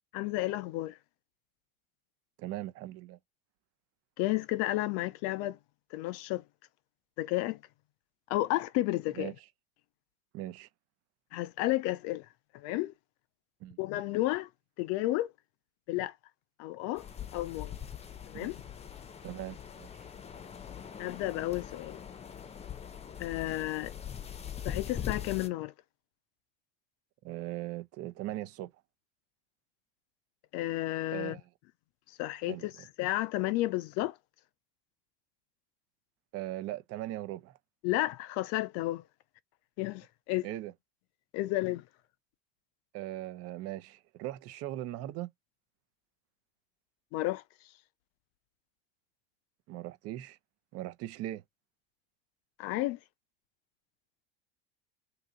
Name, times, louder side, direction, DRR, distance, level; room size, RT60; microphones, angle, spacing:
voice 1, 0.1-1.0 4.2-5.6 5.9-6.4 7.2-7.6 8.3-9.3 11.3-12.3 12.5-12.9 13.8-14.5 14.8-15.3 15.9-16.1 16.6-17.1 17.3-17.7 18.3-18.6 21.0-22.0 23.2-23.9 24.6-25.7 30.5-31.4 32.2-32.7 33.0-34.2 37.8-39.0 39.8-40.5 41.3-41.8 47.1-47.4 52.6-53.0, left 17 dB, 55° left, 0.5 m, -32 dB
voice 2, 2.4-3.2 9.2-9.3 10.3-10.7 13.6-13.8 18.3-18.5 19.2-19.9 27.2-28.7 31.1-31.4 32.5-32.9 36.3-37.6 40.4-40.7 42.9-45.3 49.7-50.4 50.7-51.4, right 15 dB, 50° right, 0.7 m, -39 dB
sound 1, 17.0-25.5, left 9 dB, 20° left, 0.7 m, -42 dB
2.8 x 2.7 x 3.8 m
hypercardioid pair, 100°, 31 cm